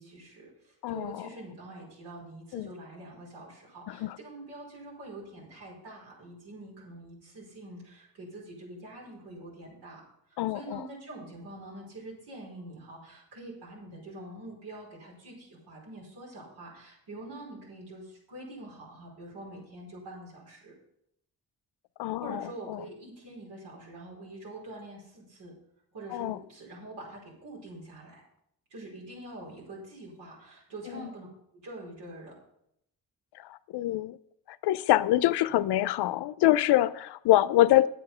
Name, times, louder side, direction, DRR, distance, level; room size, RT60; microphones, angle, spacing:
voice 1, 0.0-10.0 10.3-20.7 22.2-25.5 25.9-28.2 28.7-31.3 31.5-32.3, right 2 dB, 80° right, 5.1 m, -45 dB
voice 2, 0.8-1.3 2.5-2.7 3.9-4.2 10.4-10.8 22.0-22.8 26.1-26.4 30.9-31.0 33.4-34.2 34.6-37.9, left 14 dB, 75° left, 0.6 m, -25 dB
9.6 x 8.4 x 5.6 m
supercardioid pair, 50°, 40 cm